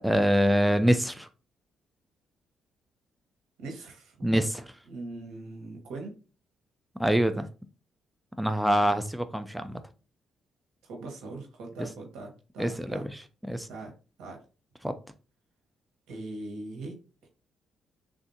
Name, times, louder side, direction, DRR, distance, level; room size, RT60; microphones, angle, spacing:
voice 1, 0.0-1.3 4.2-4.7 7.0-7.5 8.4-9.8 12.6-13.1 13.5-13.7 14.8-14.9, equal, 5° right, 0.4 m, -25 dB
voice 2, 3.6-4.1 4.9-6.1 10.8-13.1 13.7-13.9 14.2-14.4 16.1-17.0 17.2-17.3, right 2 dB, 90° right, 1.1 m, -41 dB
3.5 x 2.5 x 2.7 m
cardioid pair, 90°, 0 cm